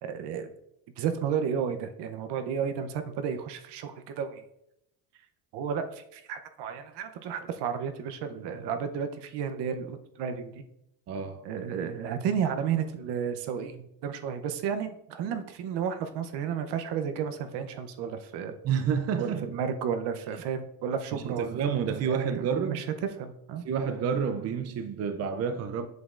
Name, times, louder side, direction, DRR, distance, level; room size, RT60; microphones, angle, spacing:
voice 1, 0.0-0.5 1.0-4.4 5.5-10.6 11.4-18.5 19.2-21.6 22.1-22.8 23.2-23.6, right 7 dB, 70° right, 0.8 m, -32 dB
voice 2, 11.1-11.5 18.6-19.6 21.1-22.9 23.6-25.9, right 7 dB, 35° right, 0.5 m, -29 dB
7.9 x 5.2 x 2.5 m
cardioid pair, 115°, 43 cm